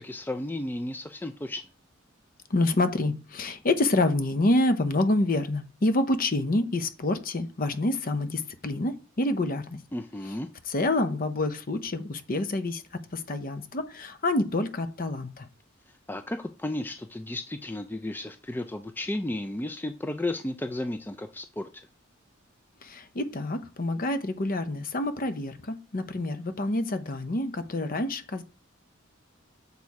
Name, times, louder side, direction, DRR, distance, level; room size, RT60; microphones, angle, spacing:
voice 1, 0.0-1.6 9.9-10.5 16.1-21.7, left 1 dB, 10° left, 0.4 m, -33 dB
voice 2, 2.5-9.8 10.7-12.8 13.1-15.5 22.8-28.4, left 2 dB, 45° left, 0.7 m, -27 dB
6.9 x 4.4 x 4.7 m
head